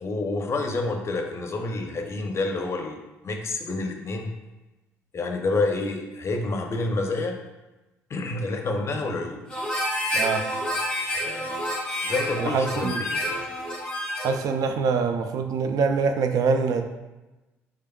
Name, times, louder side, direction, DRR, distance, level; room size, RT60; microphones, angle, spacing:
voice 1, 0.0-4.3 5.1-7.4 8.1-9.4 11.1-11.6 12.0-13.5, left 3 dB, 40° left, 4 dB, 0.6 m, -28 dB
Harmonica, 9.5-14.4, left 1 dB, 10° left, 1.3 m, -29 dB
voice 2, 10.1-10.4 12.4-13.0 14.2-16.8, right 5 dB, 55° right, 6 dB, 0.4 m, -24 dB
3.6 x 3.3 x 2.3 m, 1.1 s
hypercardioid pair, 55°, 7 cm